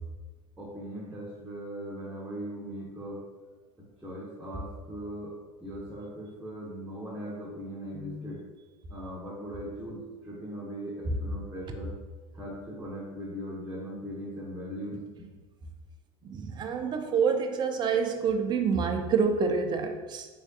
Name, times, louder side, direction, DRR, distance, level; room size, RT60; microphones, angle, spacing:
voice 1, 0.6-3.2 4.0-5.3 5.6-8.4 8.9-11.9 12.3-15.3, equal, 5° right, -5 dB, 0.8 m, -39 dB
voice 2, 16.2-20.3, right 5 dB, 25° right, 5 dB, 0.4 m, -27 dB
3.4 x 3.1 x 2.6 m, 1.3 s
hypercardioid pair, 90°, 17 cm